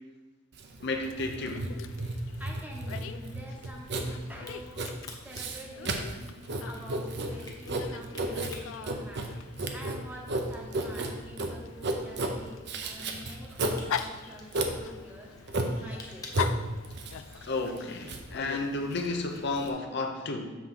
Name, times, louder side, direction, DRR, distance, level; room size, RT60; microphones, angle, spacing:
Writing, 0.5-19.7, right 2 dB, 60° right, 0.7 m, -34 dB
voice 1, 0.8-1.7 17.5-20.6, left 2 dB, 60° left, 4 dB, 0.7 m, -32 dB
Dog, 0.9-19.3, left 8 dB, 80° left, 0.3 m, -43 dB
voice 2, 2.4-4.9 5.2-6.0 6.6-9.3 9.7-15.3 15.8-16.4, equal, 10° right, 0 dB, 0.9 m, -47 dB
Crack, 4.4-9.8 10.2-17.2, left 3 dB, 20° left, 0.9 m, -50 dB
7.3 x 3.7 x 5.6 m, 1.2 s
head